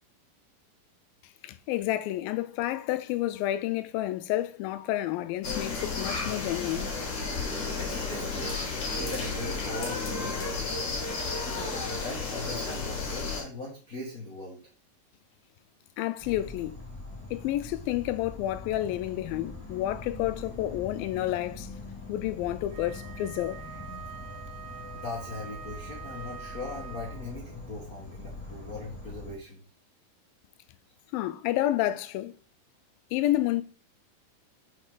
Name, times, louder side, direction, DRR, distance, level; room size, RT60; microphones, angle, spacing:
voice 1, 1.4-6.9 16.0-16.8 17.3-21.7 22.1-23.6 31.1-32.3 33.1-33.6, left 14 dB, 85° left, 2.4 m, -30 dB
sound 1, 5.4-13.4, left 3 dB, 40° left, 1.8 m, -32 dB
voice 2, 7.8-8.5 9.0-10.8 11.4-14.6 24.9-29.6, left 2 dB, 60° left, 0.9 m, -40 dB
Insect / Frog, 16.2-29.4, left 3 dB, 5° left, 2.7 m, -43 dB
Wind instrument woodwind instrument, 22.7-27.4, right 8 dB, 80° right, 2.8 m, -45 dB
6.3 x 5.6 x 3.8 m
omnidirectional pair, 4.1 m